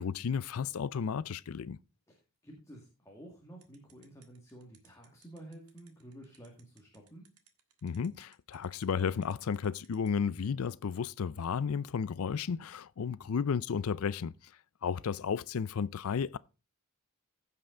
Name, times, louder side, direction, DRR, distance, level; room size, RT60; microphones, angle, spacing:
voice 1, 0.0-1.8 7.8-14.3 14.8-16.4, left 6 dB, 75° left, 0.4 m, -33 dB
voice 2, 2.1-7.3 13.0-13.4, right 1 dB, 15° left, 1.9 m, -52 dB
sound 1, 3.6-10.1, right 10 dB, 90° right, 1.6 m, -63 dB
15.5 x 5.6 x 3.8 m
head